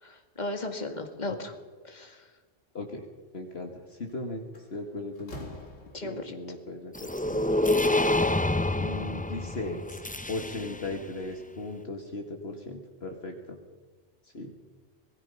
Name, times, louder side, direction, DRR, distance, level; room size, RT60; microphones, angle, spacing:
voice 1, 0.0-1.5 1.8-2.2 5.9-6.4, left 2 dB, 35° left, 4 dB, 2.5 m, -36 dB
voice 2, 2.7-3.0 3.3-4.4 4.7-5.5 6.0-6.9 7.3-7.6 8.8-10.0 10.3-13.6 14.3-14.5, left 2 dB, 55° left, 3 dB, 2.2 m, -37 dB
Slam, 3.9-4.1 4.5-6.4, left 1 dB, 90° left, 2.9 m, -45 dB
sound 1, 6.9-11.0, left 2 dB, 10° left, 0.5 m, -27 dB
26.5 x 20.5 x 5.6 m, 1.4 s
omnidirectional pair, 1.3 m